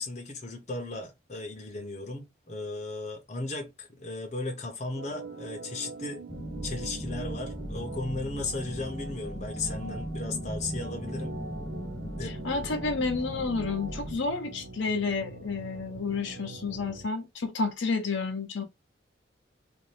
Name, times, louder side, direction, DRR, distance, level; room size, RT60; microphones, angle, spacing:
voice 1, 0.0-6.2 6.6-11.3 12.2-12.4, left 2 dB, 35° left, 0.9 m, -36 dB
Organ, 4.9-17.1, right 3 dB, 65° right, 0.7 m, -44 dB
sound 1, 6.3-14.2, equal, 10° left, 0.4 m, -37 dB
voice 2, 12.2-18.6, left 4 dB, 75° left, 0.7 m, -30 dB
2.7 x 2.5 x 3.2 m
head